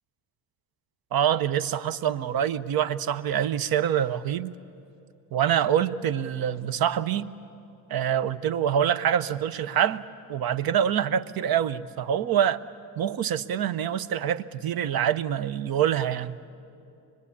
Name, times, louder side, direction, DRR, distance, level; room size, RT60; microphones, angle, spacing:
voice 1, 1.1-4.5 5.3-7.3 7.9-10.0 10.3-12.6 13.0-16.4, right 9 dB, 55° right, 0.9 m, -25 dB
24.5 x 21.5 x 8.4 m
supercardioid pair, 65°, 43 cm